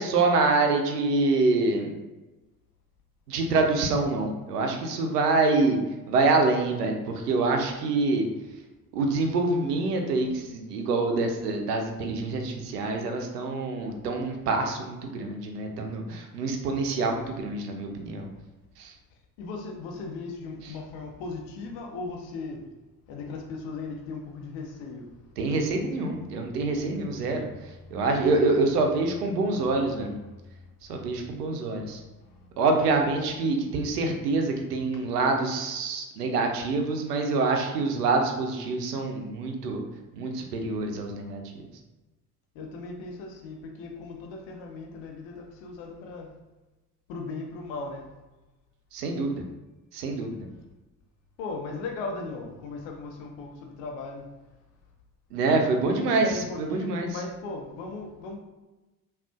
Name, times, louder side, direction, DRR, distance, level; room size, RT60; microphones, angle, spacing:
voice 1, 0.0-1.9 3.3-5.8 6.1-8.3 8.9-18.3 18.8-18.9 25.4-27.5 27.9-30.2 30.9-32.0 32.6-39.8 40.1-41.4 48.9-49.4 49.9-50.4 55.3-56.3 56.6-57.1, right 3 dB, 85° right, 3 dB, 0.5 m, -26 dB
voice 2, 19.4-22.6 23.1-25.1 31.9-32.5 32.8-33.4 34.9-35.0 42.5-46.3 47.1-48.0 51.4-54.3 55.8-58.4, left 3 dB, 70° left, 1 dB, 0.8 m, -38 dB
3.6 x 2.4 x 2.4 m, 1.1 s
figure-of-eight pair, 45°, 46 cm